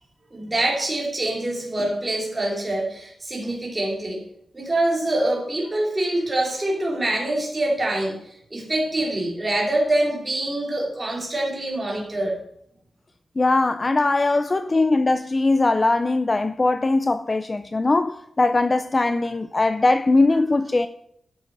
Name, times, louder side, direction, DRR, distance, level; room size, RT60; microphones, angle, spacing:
voice 1, 0.3-4.2 4.5-8.2 8.5-12.4, right 1 dB, 20° right, 3.0 m, -25 dB
voice 2, 13.4-20.9, left 2 dB, 25° left, 0.4 m, -20 dB
12.5 x 6.8 x 5.3 m
wide cardioid pair, 155°, 0 cm